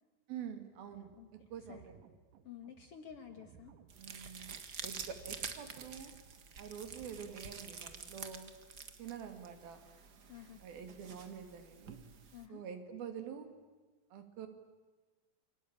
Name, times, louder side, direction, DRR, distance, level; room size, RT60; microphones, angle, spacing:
voice 1, 0.3-1.1 1.5-2.0 4.0-6.1 6.6-8.5 9.0-9.8 10.6-12.0 12.5-13.5 14.1-14.5, right 7 dB, 85° right, 8 dB, 4.1 m, -46 dB
sound 1, 0.7-8.0, right 7 dB, 65° right, 2.8 m, -62 dB
voice 2, 2.5-3.7 10.3-10.6 12.3-12.6, left 9 dB, 55° left, 8 dB, 1.7 m, -51 dB
sound 2, 3.9-12.5, right 6 dB, 45° right, 1.3 m, -48 dB
28.0 x 24.0 x 8.8 m, 1.3 s
omnidirectional pair, 4.2 m